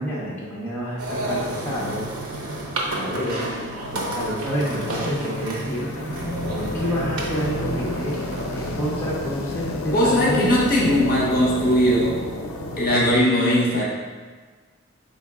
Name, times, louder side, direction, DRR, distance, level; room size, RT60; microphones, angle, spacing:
voice 1, 0.0-2.0 2.9-3.4 3.9-5.9 6.5-8.1 8.5-10.8, equal, 10° left, -7 dB, 0.7 m, -28 dB
sound 1, 1.0-8.7, right 1 dB, 90° right, 0.7 m, -31 dB
sound 2, 4.0-13.2, left 1 dB, 70° left, 0.4 m, -31 dB
voice 2, 9.9-12.2 12.8-13.9, equal, 40° left, -4 dB, 0.8 m, -19 dB
4.3 x 2.8 x 3.6 m, 1.5 s
head